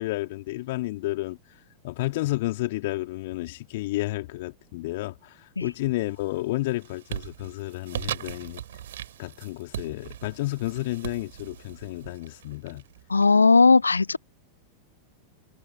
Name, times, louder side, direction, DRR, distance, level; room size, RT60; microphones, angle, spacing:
voice 1, 0.0-8.6 9.2-12.8, left 19 dB, 50° left, 3.5 m, -31 dB
sound 1, 5.7-6.2 6.6-13.2, right 11 dB, 60° right, 4.3 m, -39 dB
voice 2, 13.1-14.2, left 4 dB, 80° left, 0.4 m, -17 dB
figure-of-eight pair, 90°, 0 cm